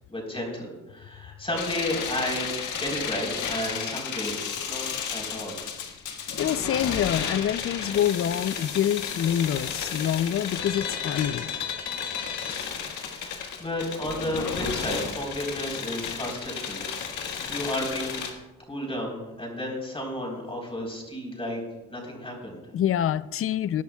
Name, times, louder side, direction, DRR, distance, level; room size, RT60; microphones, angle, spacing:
voice 1, 0.1-4.3 4.7-5.6 13.1-13.3 13.6-18.2 18.7-21.6 21.9-22.6, left 1 dB, 20° left, 3.9 m, -32 dB
sound 1, 1.5-18.3, left 7 dB, 80° left, 1.6 m, -33 dB
voice 2, 6.4-11.5 22.7-23.8, left 10 dB, 45° left, 0.5 m, -26 dB
19.5 x 10.5 x 2.3 m
cardioid pair, 90°, 30 cm